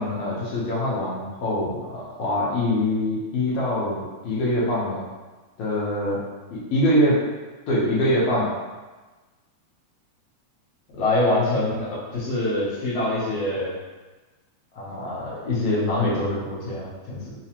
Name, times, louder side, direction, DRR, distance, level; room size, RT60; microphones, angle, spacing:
voice 1, 0.0-5.0 5.6-6.2 6.5-7.2 7.7-8.5 10.9-13.7 14.7-17.3, left 1 dB, 70° left, -7 dB, 1.7 m, -24 dB
4.9 x 2.1 x 2.8 m, 1.3 s
omnidirectional pair, 3.5 m